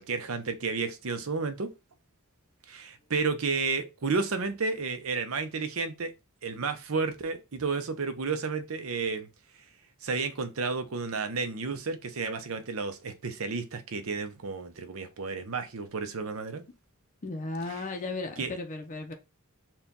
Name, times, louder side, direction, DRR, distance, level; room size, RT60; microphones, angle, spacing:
voice 1, 0.0-1.7 2.7-6.1 6.4-9.3 10.0-16.6 17.7-17.9 18.4-18.5, right 4 dB, 65° right, 0.7 m, -32 dB
voice 2, 17.2-19.1, left 3 dB, 35° left, 0.6 m, -35 dB
4.3 x 2.3 x 3.7 m
head